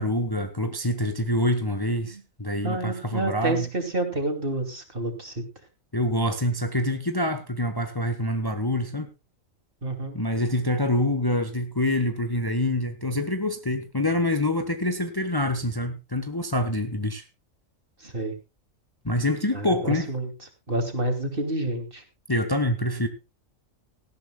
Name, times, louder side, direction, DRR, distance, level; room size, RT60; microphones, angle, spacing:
voice 1, 0.0-3.6 5.9-9.1 10.1-17.2 19.0-20.1 22.3-23.1, left 1 dB, 20° left, 8 dB, 1.2 m, -26 dB
voice 2, 2.6-5.4 9.8-10.2 18.0-18.3 19.5-20.3 20.7-22.0, right 2 dB, 40° right, 5 dB, 3.0 m, -29 dB
18.0 x 14.5 x 2.3 m, 0.26 s
omnidirectional pair, 1.4 m